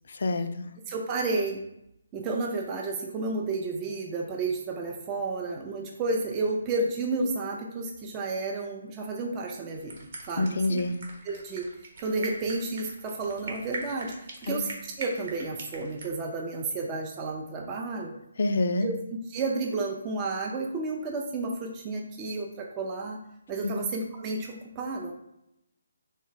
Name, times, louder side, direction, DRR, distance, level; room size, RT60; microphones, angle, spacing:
voice 1, 0.2-0.7 10.4-10.9 14.5-14.6 18.4-18.9 23.6-23.8, left 2 dB, 60° left, 9 dB, 0.3 m, -27 dB
voice 2, 0.9-1.6 2.1-10.0 10.3-10.8 11.2-11.7 12.0-18.1 18.8-19.0 19.2-23.2 23.5-25.1, right 3 dB, 25° right, 0 dB, 0.4 m, -31 dB
sound 1, 9.7-16.1, right 2 dB, 55° right, 0.9 m, -41 dB
3.1 x 2.0 x 3.9 m, 0.83 s
figure-of-eight pair, 150°, 0 cm